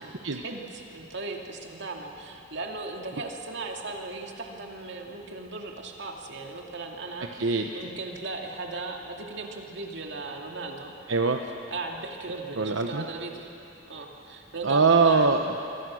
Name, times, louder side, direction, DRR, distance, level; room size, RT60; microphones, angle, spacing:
voice 1, 0.0-10.9 11.7-13.5 13.9-15.3, right 3 dB, 65° right, 1 dB, 2.5 m, -37 dB
voice 2, 7.3-7.7 11.1-11.4 12.6-13.0 14.6-15.6, right 4 dB, 85° right, 4 dB, 1.0 m, -22 dB
26.5 x 23.0 x 6.4 m, 2.9 s
head